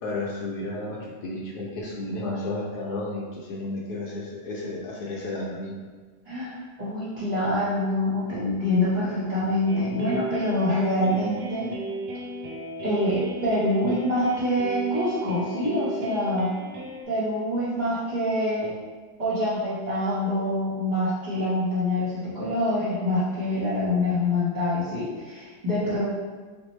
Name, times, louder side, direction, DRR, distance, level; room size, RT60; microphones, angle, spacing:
voice 1, 0.0-5.8, left 2 dB, 75° left, -3 dB, 1.1 m, -32 dB
voice 2, 6.3-11.7 12.8-16.5 17.1-18.7 19.2-26.0, left 1 dB, 30° right, -11 dB, 0.9 m, -25 dB
sound 1, 9.7-17.0, right 1 dB, 75° right, 1.1 m, -36 dB
4.1 x 2.6 x 3.1 m, 1.4 s
omnidirectional pair, 1.8 m